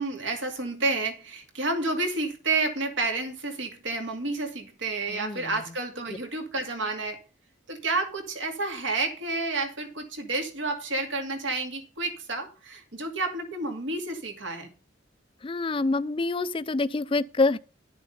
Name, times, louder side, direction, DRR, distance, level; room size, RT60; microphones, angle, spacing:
voice 1, 0.0-7.2 7.7-14.7, right 3 dB, 70° right, 2.4 m, -30 dB
voice 2, 5.2-5.5 15.4-17.6, left 3 dB, 25° left, 0.4 m, -26 dB
11.5 x 6.8 x 5.3 m
head